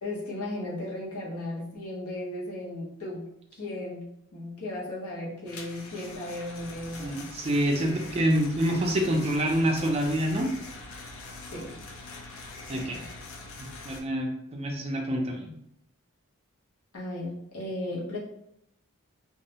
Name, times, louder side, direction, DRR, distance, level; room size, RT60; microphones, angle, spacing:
voice 1, 0.0-7.3 7.8-8.1 11.4-11.8 12.7-13.1 16.9-18.2, left 1 dB, 90° left, -4 dB, 0.8 m, -36 dB
sound 1, 5.5-14.0, left 3 dB, 70° left, 0.4 m, -43 dB
voice 2, 7.0-10.5 12.7-13.0 13.8-15.5, equal, 25° right, 1 dB, 0.3 m, -26 dB
2.4 x 2.0 x 2.7 m, 0.78 s
head